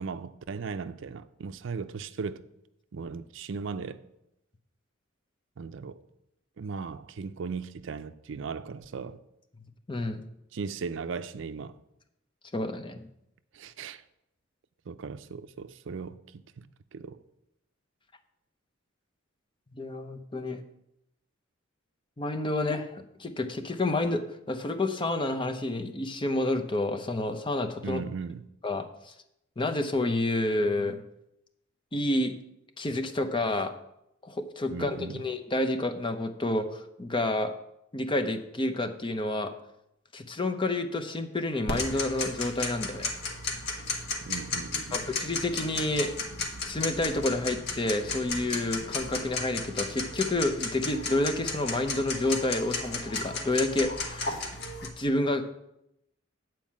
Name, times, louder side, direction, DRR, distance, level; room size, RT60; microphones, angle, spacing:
voice 1, 0.0-2.4 2.9-4.0 5.6-6.0 6.6-9.2 10.5-11.8 13.5-14.0 14.9-16.7 16.9-17.2 27.8-28.5 34.7-35.2 44.2-45.0, right 5 dB, 70° right, 0.5 m, -37 dB
voice 2, 9.9-10.2 12.5-13.0 19.7-20.6 22.2-28.0 28.6-29.1 29.6-31.0 31.9-32.3 32.8-33.7 34.2-37.5 37.9-39.5 40.1-43.1 44.9-46.1 46.6-54.4 54.8-55.4, left 2 dB, 25° left, 0.7 m, -29 dB
Tick-tock, 41.7-54.9, left 3 dB, 55° left, 1.2 m, -34 dB
9.1 x 4.6 x 7.4 m
head